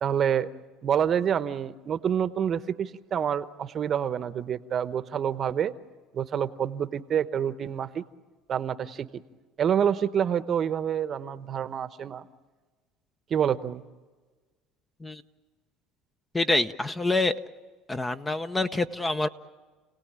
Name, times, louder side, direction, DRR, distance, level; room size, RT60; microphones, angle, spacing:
voice 1, 0.0-0.5 0.8-5.7 6.1-8.0 8.5-9.1 9.6-12.2 13.3-13.8, right 8 dB, 40° right, 12 dB, 1.0 m, -27 dB
voice 2, 16.3-17.4 17.9-19.3, left 2 dB, 15° left, 11 dB, 0.8 m, -26 dB
30.0 x 18.0 x 8.8 m, 1.3 s
supercardioid pair, 115°, 0 cm